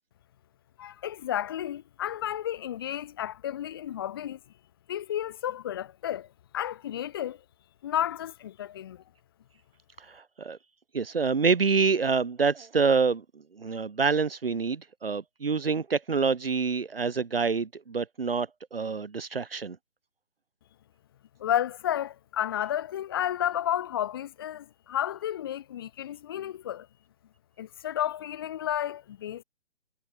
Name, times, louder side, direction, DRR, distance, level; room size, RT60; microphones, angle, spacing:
voice 1, 0.8-4.4 4.9-6.3 6.5-7.4 7.8-9.0 21.4-26.9 27.6-29.4, left 11 dB, 20° left, 4.5 m, -32 dB
voice 2, 10.0-10.6 10.9-13.2 13.6-19.8, right 5 dB, 50° right, 5.0 m, -27 dB
hypercardioid pair, 175°, 37 cm